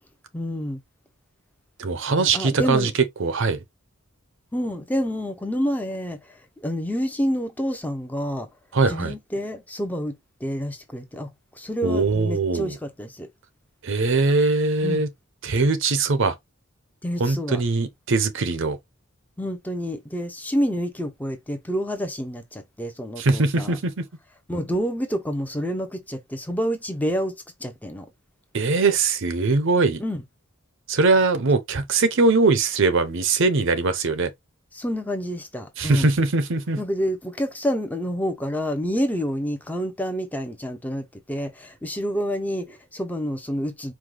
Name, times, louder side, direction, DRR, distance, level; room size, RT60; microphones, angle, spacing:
voice 1, 0.3-0.8 2.1-2.9 4.5-8.5 8.9-13.3 14.8-15.0 17.0-17.6 19.4-23.8 24.5-28.1 30.0-30.2 34.7-36.1 36.8-43.9, equal, 5° left, 0.6 m, -28 dB
voice 2, 1.8-2.9 3.2-3.6 8.7-9.1 11.8-12.8 13.8-15.1 15.4-16.4 17.2-18.8 23.2-23.9 28.5-30.0 30.9-34.3 35.8-36.8, right 3 dB, 55° right, 0.7 m, -21 dB
4.8 x 2.2 x 3.8 m
head